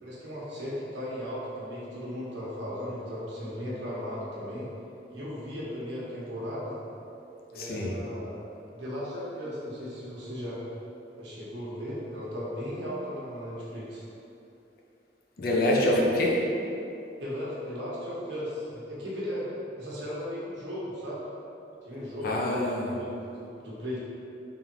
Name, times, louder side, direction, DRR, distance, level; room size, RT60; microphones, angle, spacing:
voice 1, 0.0-4.7 5.1-6.8 7.5-8.4 8.7-10.6 11.2-14.1 17.2-19.5 19.8-21.2 21.8-24.0, equal, 75° right, -7 dB, 1.1 m, -36 dB
voice 2, 7.5-7.9 15.4-16.4 22.2-22.9, left 1 dB, 55° left, -2 dB, 0.6 m, -25 dB
3.6 x 3.5 x 2.9 m, 2.8 s
head